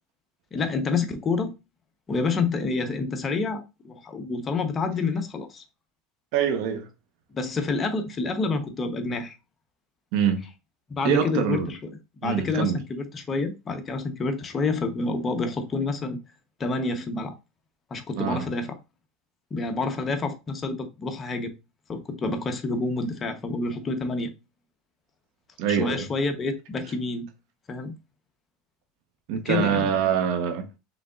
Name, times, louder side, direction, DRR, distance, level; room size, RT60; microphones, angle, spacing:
voice 1, 0.5-1.5 2.1-5.6 7.3-9.4 10.9-16.2 16.6-17.3 17.9-18.8 19.5-21.5 21.9-24.3 25.7-27.3 27.7-27.9 29.4-29.9, left 3 dB, 25° left, 0.9 m, -28 dB
voice 2, 6.3-6.9 10.1-10.5 11.0-11.7 12.2-12.8 18.2-18.5 25.6-26.0 29.3-30.7, right 8 dB, 65° right, 1.0 m, -24 dB
4.9 x 3.8 x 2.4 m
supercardioid pair, 115°, 0 cm